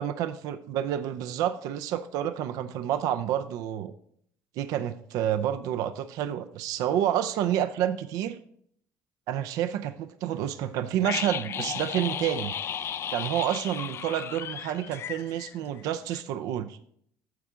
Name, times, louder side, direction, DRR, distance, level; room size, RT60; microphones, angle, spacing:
voice 1, 0.0-3.9 4.6-8.4 9.3-12.5 13.1-16.8, right 11 dB, 75° right, 10 dB, 0.5 m, -29 dB
sound 1, 11.0-16.2, left 9 dB, 45° left, 0.4 m, -34 dB
9.4 x 7.0 x 3.7 m, 0.65 s
cardioid pair, 105°, 6 cm